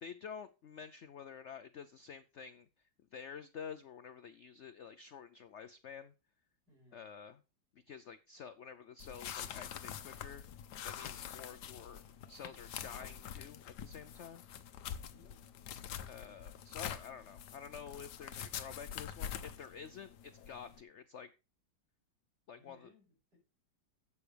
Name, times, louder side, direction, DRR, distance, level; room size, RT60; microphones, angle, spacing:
voice 1, 0.0-2.7 3.1-6.1 6.9-7.4 7.9-10.4 10.8-14.4 16.1-21.3 22.5-22.9, left 7 dB, 90° left, 12 dB, 0.6 m, -49 dB
voice 2, 6.7-7.0 15.0-15.4 22.5-23.4, left 2 dB, 60° right, -7 dB, 6.9 m, -65 dB
sound 1, 9.0-20.8, left 9 dB, 70° left, 1.3 m, -46 dB
11.5 x 8.4 x 3.3 m, 0.30 s
omnidirectional pair, 2.0 m